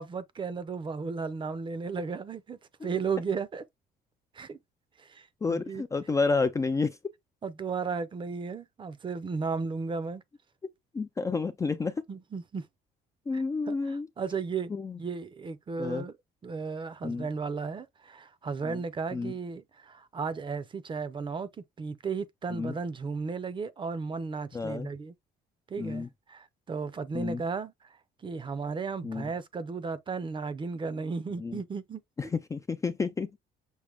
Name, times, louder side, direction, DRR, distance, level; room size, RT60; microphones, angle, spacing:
voice 1, 0.0-3.6 4.3-4.6 5.0-5.8 7.4-10.2 12.1-12.7 13.3-14.7 15.0-16.2 16.4-21.5 21.8-25.1 25.7-32.0, right 5 dB, 30° right, 0.6 m, -35 dB
voice 2, 5.4-7.0 10.9-12.0 13.3-14.1 14.7-15.0 15.8-16.0 17.0-17.3 18.7-18.8 19.1-19.3 22.5-22.7 24.5-24.9 25.8-26.1 27.1-27.4 29.0-29.3 31.4-31.6 32.2-33.3, left 4 dB, 20° left, 0.4 m, -30 dB
6.2 x 2.1 x 3.5 m
cardioid pair, 110°, 17 cm